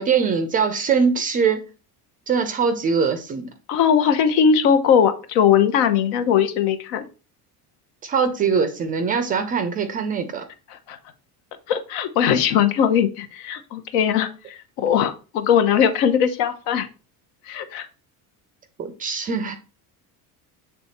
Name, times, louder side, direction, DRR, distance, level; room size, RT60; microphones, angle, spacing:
voice 1, 0.0-1.7 2.3-3.5 8.0-10.4 18.8-19.6, right 6 dB, 25° right, 0.3 m, -22 dB
voice 2, 3.7-7.1 10.7-11.0 11.7-16.9 17.5-17.9, left 8 dB, 85° left, 1.0 m, -20 dB
7.4 x 3.4 x 4.1 m
cardioid pair, 180°, 40 cm